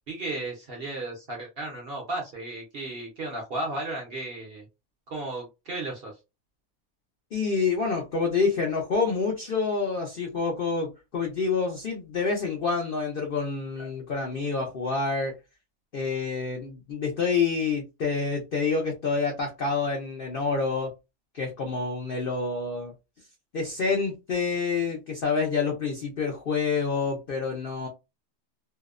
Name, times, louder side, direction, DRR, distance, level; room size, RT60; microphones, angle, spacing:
voice 1, 0.1-4.7 5.1-6.1, right 2 dB, 55° right, 0.7 m, -34 dB
voice 2, 7.3-15.3 15.9-20.9 21.3-22.9 23.5-27.9, left 4 dB, 70° left, 0.5 m, -27 dB
2.7 x 2.0 x 2.4 m
omnidirectional pair, 1.6 m